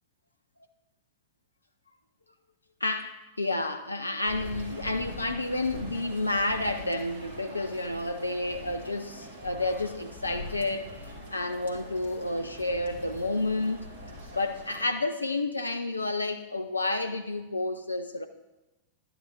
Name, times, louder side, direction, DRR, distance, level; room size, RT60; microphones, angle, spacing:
voice 1, 2.8-10.9 11.3-13.9 14.3-18.3, left 2 dB, 80° left, 0.4 m, -30 dB
sound 1, 4.2-14.8, equal, 65° right, 1.6 m, -43 dB
11.5 x 9.9 x 2.5 m
figure-of-eight pair, 90°, 0 cm